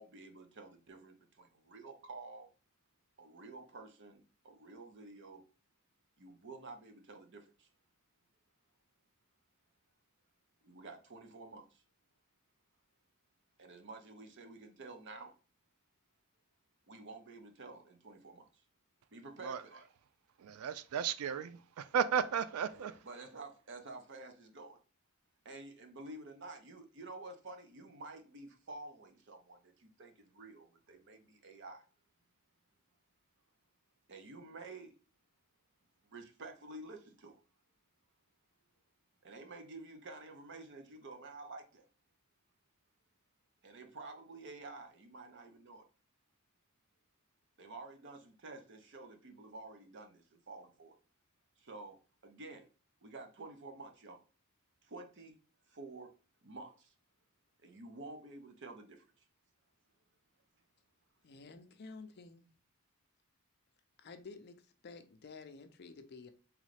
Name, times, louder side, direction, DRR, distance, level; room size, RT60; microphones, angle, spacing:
voice 1, 0.0-2.5 3.2-5.4 6.2-7.7 10.6-11.8 13.6-15.3 16.9-18.6 19.1-19.9 22.7-24.8 25.4-31.8 34.1-35.0 36.0-37.4 39.2-41.9 43.6-45.8 47.6-50.9 51.6-52.0 52.2-52.7 53.0-54.2 54.8-55.4 55.7-56.1 56.4-56.9 57.6-59.2, right 3 dB, 55° right, 0.7 m, -50 dB
voice 2, 20.4-22.9, right 7 dB, 90° right, 0.4 m, -34 dB
voice 3, 61.2-62.5 64.0-64.6 64.8-66.3, left 4 dB, 50° left, 0.5 m, -51 dB
3.7 x 3.1 x 3.3 m
head